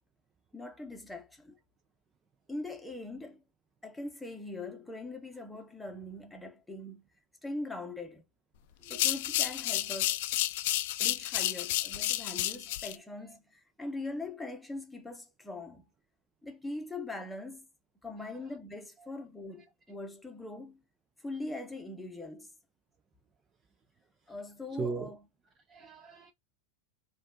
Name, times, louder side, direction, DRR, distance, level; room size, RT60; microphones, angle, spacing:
voice 1, 0.5-1.6 2.5-3.4 3.8-7.0 7.4-8.2 8.9-10.2 11.0-15.9 16.4-17.7 18.0-20.8 21.2-22.5 24.3-25.2, left 2 dB, 5° left, 0.9 m, -41 dB
sound 1, 8.8-13.0, left 15 dB, 60° left, 0.4 m, -31 dB
voice 2, 24.7-25.1 25.7-26.3, right 4 dB, 20° right, 0.5 m, -38 dB
5.1 x 2.4 x 3.6 m
supercardioid pair, 140°, 0 cm